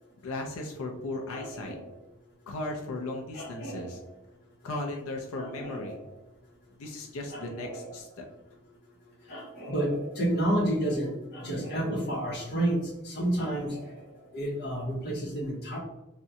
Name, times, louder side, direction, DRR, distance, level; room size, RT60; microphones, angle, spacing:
voice 1, 0.2-1.7 2.5-4.0 4.6-6.0 6.8-8.2, left 2 dB, 85° left, 2 dB, 0.5 m, -36 dB
voice 2, 1.3-1.9 3.3-4.0 5.4-6.1 7.3-7.9 9.2-14.0 14.3-15.8, right 1 dB, 50° left, -7 dB, 0.8 m, -31 dB
3.5 x 2.1 x 2.7 m, 0.97 s
head